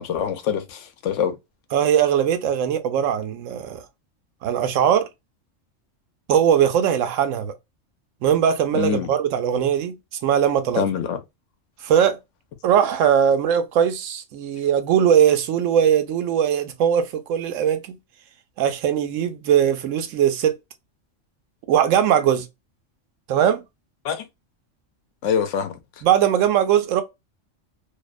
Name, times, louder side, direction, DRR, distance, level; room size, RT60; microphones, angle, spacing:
voice 1, 0.0-1.4 8.7-9.1 10.8-11.2 24.0-24.2 25.2-25.8, left 8 dB, 75° left, 0.9 m, -24 dB
voice 2, 1.7-3.8 4.4-5.1 6.3-7.5 8.2-10.8 11.8-12.2 12.6-18.0 18.6-20.5 21.7-22.5 23.3-23.6 26.0-27.0, right 9 dB, 85° right, 1.0 m, -20 dB
2.6 x 2.1 x 2.3 m
omnidirectional pair, 1.3 m